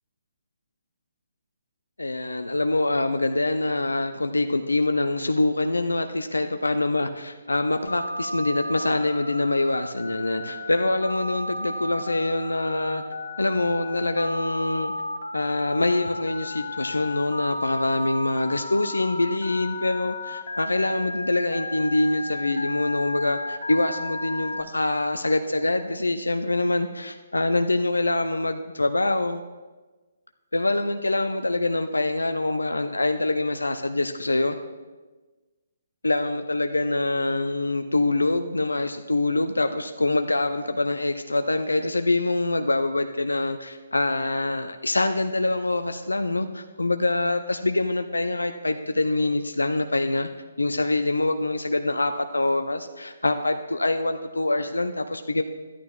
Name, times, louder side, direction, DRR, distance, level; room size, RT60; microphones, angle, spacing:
voice 1, 2.0-13.0 13.4-14.9 15.3-29.4 30.5-34.6 36.0-50.3 50.6-55.4, left 2 dB, 80° left, 7 dB, 0.5 m, -25 dB
Telephone, 7.9-24.6, left 2 dB, 65° left, 1.2 m, -34 dB
14.0 x 11.0 x 2.4 m, 1.3 s
figure-of-eight pair, 135°, 0 cm